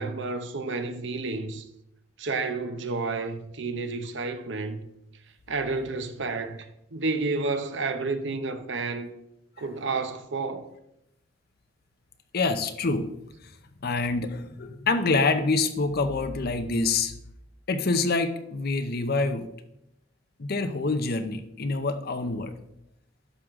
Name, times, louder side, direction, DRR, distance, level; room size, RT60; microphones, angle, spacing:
voice 1, 0.0-1.6 2.2-4.8 5.5-6.7 6.9-9.1 9.6-10.6, right 3 dB, 65° right, 0.8 m, -30 dB
voice 2, 12.3-13.1 13.8-17.1 17.7-19.5 20.4-22.5, left 3 dB, 55° left, 0.7 m, -26 dB
11.0 x 6.2 x 3.7 m
head